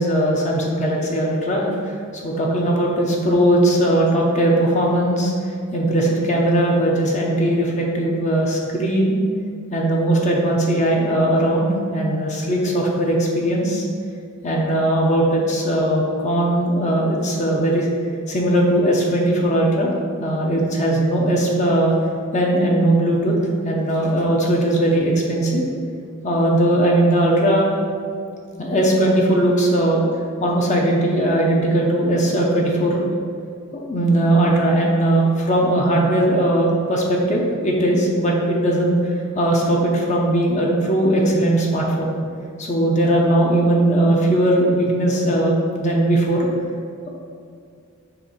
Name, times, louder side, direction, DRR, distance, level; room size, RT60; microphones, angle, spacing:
voice 1, 0.0-1.7 2.2-5.3 5.7-9.2 9.7-13.8 14.4-17.9 18.3-19.9 20.2-21.9 22.3-23.3 23.6-25.6 26.2-27.7 28.6-30.1 30.4-33.0 33.9-38.9 39.3-42.1 42.7-46.5, right 1 dB, 35° left, -2 dB, 0.9 m, -19 dB
6.8 x 2.7 x 5.6 m, 2.3 s
head